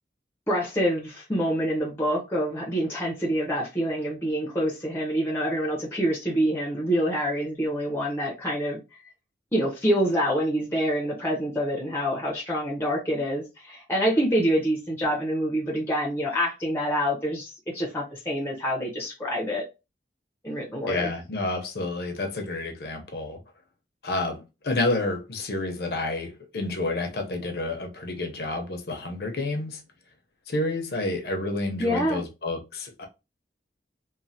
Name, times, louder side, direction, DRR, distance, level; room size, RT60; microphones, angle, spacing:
voice 1, 0.5-8.8 9.5-19.6 20.4-21.1 31.8-32.2, equal, 15° left, 0.6 m, -26 dB
voice 2, 20.9-23.4 24.0-29.8 30.5-33.1, left 2 dB, 60° left, 0.6 m, -29 dB
3.1 x 2.1 x 2.6 m
head